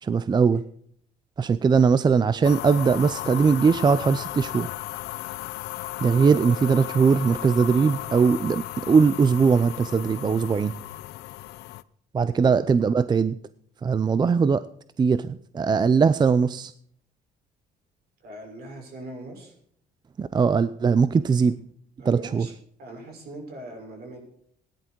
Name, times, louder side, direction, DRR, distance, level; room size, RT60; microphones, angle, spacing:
voice 1, 0.0-0.6 1.4-4.7 6.0-10.7 12.1-13.4 13.8-14.6 15.0-16.7 20.2-21.6 22.1-22.5, right 5 dB, 25° right, 15 dB, 0.5 m, -20 dB
sound 1, 2.4-11.8, left 17 dB, 85° left, 0.6 m, -35 dB
voice 2, 18.2-19.5 22.0-24.2, right 1 dB, 65° right, 3 dB, 6.3 m, -41 dB
17.5 x 10.5 x 4.6 m, 0.64 s
cardioid pair, 110°, 17 cm